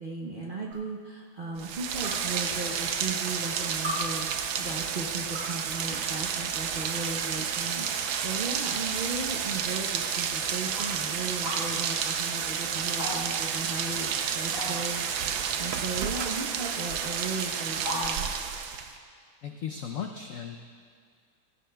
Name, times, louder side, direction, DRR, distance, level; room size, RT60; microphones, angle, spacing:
voice 1, 0.0-18.3, right 3 dB, 50° right, -3 dB, 0.6 m, -36 dB
sound 1, 0.7-0.8 2.0-2.1 3.1-3.2 3.8-4.0 5.1-5.6 6.5-6.6 7.1-7.2 7.9-8.2 8.7-8.8 9.8-9.9 10.7-10.9 11.4-11.6 13.0-13.2 13.4-13.5 14.5-14.9 16.1-16.3 16.7-16.8 17.8-18.0, left 1 dB, 20° right, 3.8 m, -36 dB
Rain, 1.6-19.0, right 7 dB, 85° right, 1.5 m, -31 dB
voice 2, 19.4-20.6, left 7 dB, 80° left, 4 dB, 0.7 m, -36 dB
16.0 x 15.5 x 2.3 m, 2.1 s
omnidirectional pair, 2.1 m